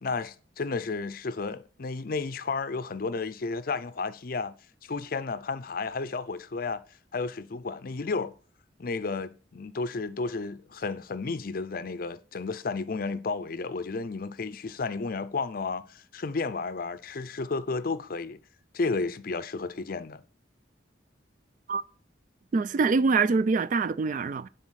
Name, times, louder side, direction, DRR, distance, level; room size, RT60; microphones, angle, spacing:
voice 1, 0.0-4.5 4.8-6.8 7.1-8.3 8.8-18.4 18.7-20.2, left 4 dB, 50° left, 0.5 m, -32 dB
voice 2, 22.5-24.5, right 4 dB, 40° right, 0.3 m, -24 dB
9.7 x 4.0 x 6.3 m
head